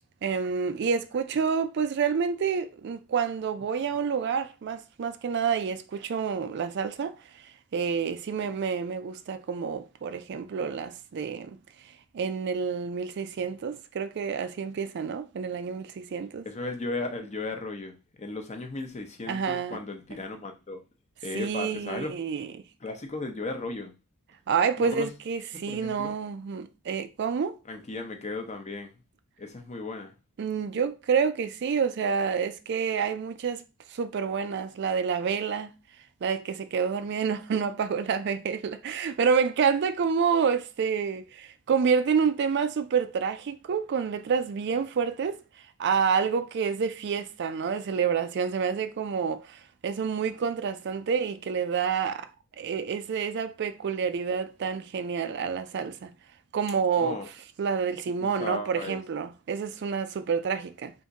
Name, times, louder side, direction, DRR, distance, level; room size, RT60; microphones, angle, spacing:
voice 1, 0.2-7.4 7.7-11.6 12.1-16.5 19.3-19.8 21.3-22.5 24.5-27.6 30.4-33.6 33.9-35.7 36.2-45.4 45.8-52.3 52.6-56.1 56.5-57.2 57.6-60.9, right 6 dB, 50° right, 0.3 m, -28 dB
voice 2, 16.4-20.8 21.2-22.2 22.8-23.9 24.8-25.1 25.7-26.1 27.7-28.9 29.4-30.1 57.0-57.3 57.9-59.0, left 2 dB, 30° left, 0.6 m, -36 dB
3.6 x 2.6 x 4.0 m
head